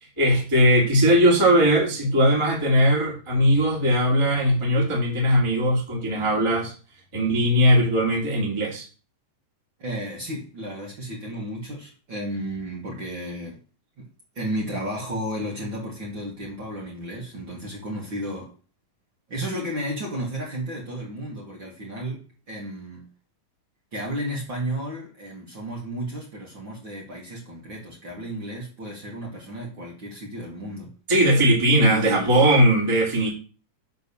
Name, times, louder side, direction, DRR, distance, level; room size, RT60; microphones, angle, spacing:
voice 1, 0.2-6.7 7.1-8.9 31.1-33.3, equal, 10° right, 2.2 m, -19 dB
voice 2, 9.8-13.6 14.0-14.1 14.3-18.5 19.3-23.0 23.9-30.9 31.7-32.5, equal, 40° right, 2.4 m, -33 dB
9.8 x 3.8 x 7.1 m
omnidirectional pair, 3.8 m